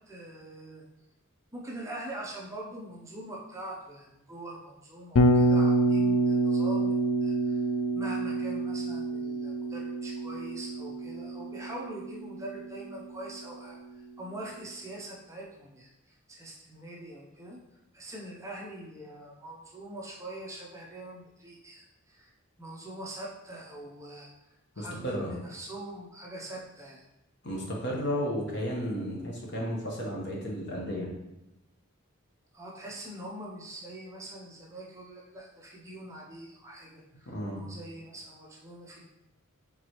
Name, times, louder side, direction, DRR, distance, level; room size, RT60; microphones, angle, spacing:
voice 1, 0.1-0.8 1.5-7.6 7.9-13.8 14.2-17.6 17.9-22.3 22.6-24.3 24.8-27.0 32.5-39.0, right 1 dB, 15° right, -3 dB, 0.6 m, -43 dB
Bass guitar, 5.1-13.2, right 2 dB, 75° left, 0.4 m, -27 dB
voice 2, 24.8-25.3 27.4-31.1 37.3-37.7, equal, 50° left, -2 dB, 1.0 m, -33 dB
4.6 x 3.9 x 3.0 m, 0.93 s
head